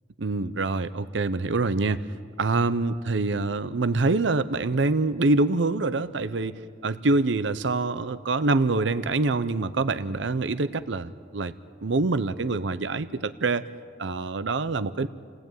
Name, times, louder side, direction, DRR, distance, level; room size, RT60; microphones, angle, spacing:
voice 1, 0.2-2.0 2.4-11.5 11.8-13.6 14.0-15.1, right 3 dB, 75° right, 14 dB, 0.7 m, -25 dB
29.5 x 18.0 x 9.0 m, 2.2 s
head